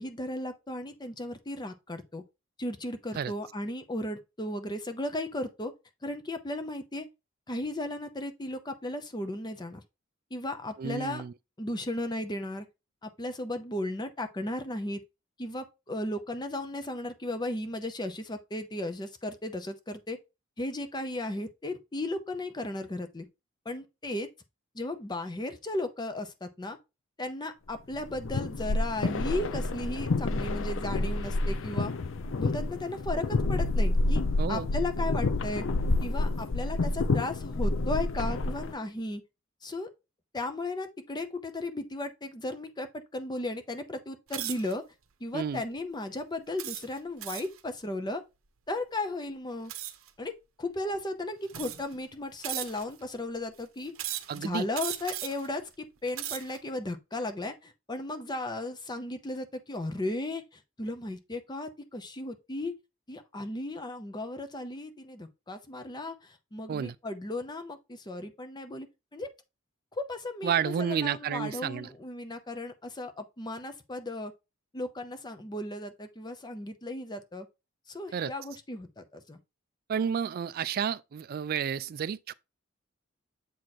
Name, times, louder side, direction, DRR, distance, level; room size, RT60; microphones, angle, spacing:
voice 1, 0.0-2.2 2.6-5.7 6.0-7.1 7.5-9.8 10.3-11.2 11.6-12.7 13.0-15.0 15.4-20.2 20.6-23.3 23.6-24.3 24.7-26.8 27.2-31.9 32.4-34.2 34.5-35.6 36.0-39.2 39.6-39.9 40.3-44.8 45.2-48.2 48.7-49.7 50.2-53.9 54.3-62.8 63.1-68.9 69.1-69.3 69.9-74.3 74.7-77.5 77.9-79.4, left 1 dB, 20° left, 0.7 m, -35 dB
voice 2, 10.8-11.3 34.4-34.7 45.3-45.6 54.3-54.7 66.7-66.9 70.4-71.9 78.1-78.3 79.9-82.3, right 7 dB, 45° right, 0.3 m, -31 dB
sound 1, 27.9-38.7, left 2 dB, 65° left, 0.5 m, -29 dB
sound 2, 44.3-44.7 45.4-45.6 46.6-47.6 49.7-50.1 50.9-51.0 51.5-52.0 52.4-53.0 53.9-54.4 54.7-55.5 56.0-56.6, right 12 dB, 80° right, 0.7 m, -37 dB
7.6 x 3.1 x 4.1 m
head